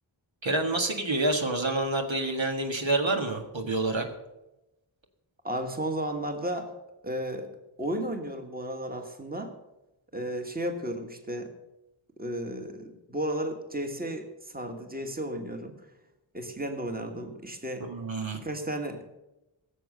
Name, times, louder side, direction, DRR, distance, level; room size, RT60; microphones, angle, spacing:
voice 1, 0.4-4.1 17.8-18.4, right 2 dB, 70° right, 3 dB, 1.8 m, -28 dB
voice 2, 5.4-6.7 7.0-7.5 7.8-9.5 10.1-11.5 12.2-15.7 16.3-17.9 18.4-19.1, right 1 dB, 20° right, 5 dB, 1.7 m, -33 dB
16.5 x 7.3 x 6.7 m, 0.96 s
wide cardioid pair, 50°, 48 cm